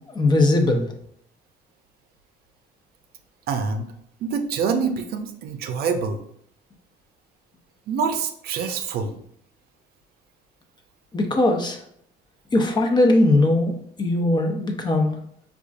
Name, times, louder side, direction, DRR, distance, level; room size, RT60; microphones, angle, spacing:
voice 1, 0.1-0.9 11.1-11.8 12.5-15.2, left 2 dB, 25° left, 3 dB, 0.6 m, -20 dB
voice 2, 3.5-3.9 4.2-6.2 7.9-9.1, right 5 dB, 65° right, 7 dB, 0.5 m, -26 dB
5.0 x 2.4 x 2.5 m, 0.67 s
cardioid pair, 110°, 17 cm